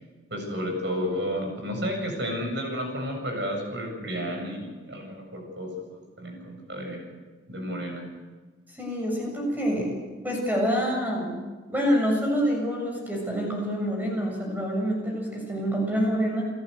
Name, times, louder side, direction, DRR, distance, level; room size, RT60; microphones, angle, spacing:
voice 1, 0.3-7.0 7.5-8.1, equal, 65° right, 2 dB, 7.8 m, -32 dB
voice 2, 8.8-10.0 10.2-11.3 11.7-16.5, equal, 10° right, 0 dB, 7.4 m, -26 dB
30.0 x 14.5 x 8.1 m, 1.3 s
head